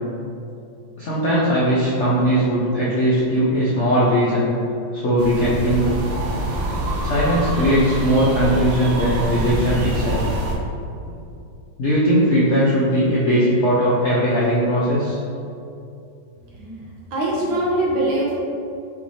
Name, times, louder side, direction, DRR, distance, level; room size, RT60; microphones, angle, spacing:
voice 1, 1.0-4.5 4.9-6.0 7.0-10.2 11.8-15.2, equal, 70° left, -7 dB, 0.6 m, -19 dB
sound 1, 5.2-10.6, right 1 dB, 70° right, 0.8 m, -25 dB
voice 2, 17.1-18.3, right 1 dB, 85° right, -4 dB, 1.7 m, -22 dB
6.0 x 3.2 x 2.8 m, 2.6 s
omnidirectional pair, 2.1 m